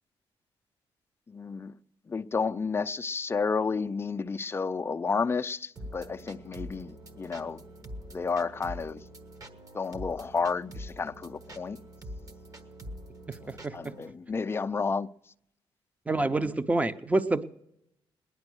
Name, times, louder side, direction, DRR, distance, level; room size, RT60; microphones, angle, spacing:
voice 1, 1.3-1.7 2.1-7.6 8.1-9.0 9.7-11.8 13.4-15.1, left 4 dB, 25° left, 0.5 m, -31 dB
sound 1, 5.8-14.1, equal, 40° right, 1.2 m, -45 dB
voice 2, 13.3-13.7 16.1-17.4, right 2 dB, 15° right, 0.7 m, -27 dB
19.0 x 10.5 x 6.3 m
cardioid pair, 110°, 10 cm